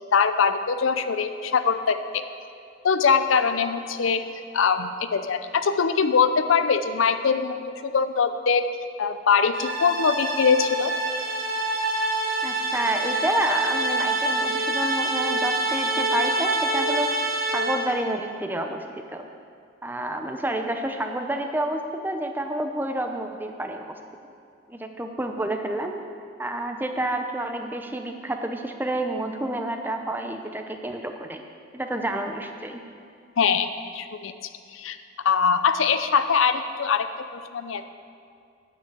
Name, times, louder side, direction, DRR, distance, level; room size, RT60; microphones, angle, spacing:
voice 1, 0.0-2.2 2.8-4.2 4.5-8.7 9.0-10.9 33.4-33.7 33.9-34.3 34.7-35.0 35.2-37.8, left 6 dB, 80° left, 10 dB, 0.5 m, -22 dB
sound 1, 9.5-18.0, right 2 dB, 85° right, 1.3 m, -26 dB
voice 2, 12.4-19.3 19.8-24.0 24.7-26.0 26.4-31.4 31.7-32.8, right 1 dB, 10° right, 5 dB, 0.5 m, -29 dB
9.1 x 6.5 x 8.1 m, 2.4 s
head